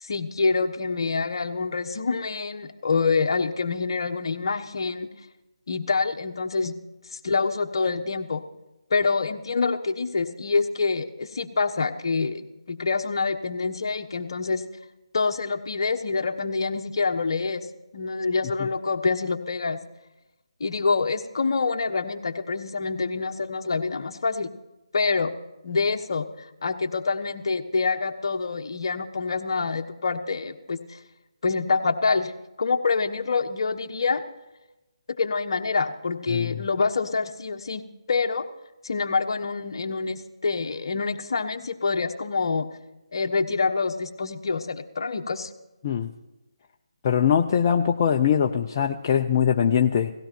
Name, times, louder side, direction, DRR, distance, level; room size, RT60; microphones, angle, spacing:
voice 1, 0.0-5.1 5.7-6.7 7.1-8.4 8.9-14.6 15.1-17.7 17.9-19.8 20.6-24.5 24.9-25.3 25.6-31.0 31.4-32.3 32.6-34.2 35.2-37.8 38.1-38.4 38.8-42.7 43.1-45.5, left 4 dB, 55° left, 6 dB, 1.2 m, -26 dB
voice 2, 36.3-36.6 45.8-46.1 47.0-50.1, left 8 dB, 30° left, 3 dB, 0.6 m, -22 dB
17.5 x 16.0 x 4.5 m, 0.99 s
figure-of-eight pair, 150°, 3 cm